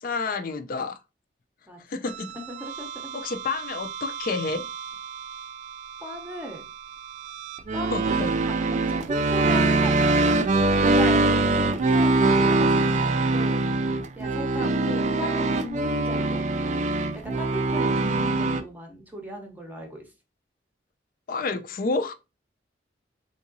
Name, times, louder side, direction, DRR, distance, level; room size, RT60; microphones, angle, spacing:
voice 1, 0.0-1.0 1.9-2.3 3.1-4.7 7.9-8.3 11.2-11.4 14.9-15.1 21.3-22.1, left 3 dB, 50° left, 0.4 m, -29 dB
sound 1, 2.1-18.6, right 2 dB, 40° right, 0.3 m, -24 dB
voice 2, 2.5-3.2 6.0-6.7 7.7-8.0 8.4-10.3 10.8-13.6 14.2-14.7 15.2-16.4 17.1-20.1, equal, 10° right, 0.7 m, -37 dB
3.7 x 2.8 x 2.6 m
head